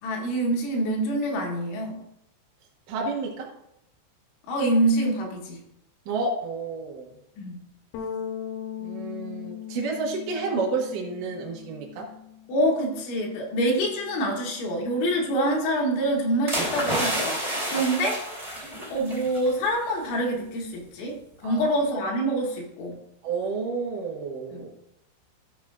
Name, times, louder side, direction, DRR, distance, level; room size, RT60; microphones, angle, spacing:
voice 1, 0.0-2.0 4.5-5.6 7.4-7.6 12.5-18.2 18.9-21.2 21.4-23.0 24.5-24.7, right 1 dB, 70° left, -1 dB, 3.8 m, -26 dB
voice 2, 2.9-3.5 6.1-7.1 8.8-12.1 17.7-18.1 21.4-21.7 23.2-24.7, right 4 dB, 80° right, -2 dB, 1.9 m, -30 dB
Bass guitar, 7.9-14.2, left 8 dB, 85° left, 3.6 m, -39 dB
sound 1, 16.5-19.5 19.8-20.1, right 1 dB, 15° right, 1.6 m, -29 dB
15.5 x 6.4 x 2.4 m, 0.79 s
omnidirectional pair, 6.0 m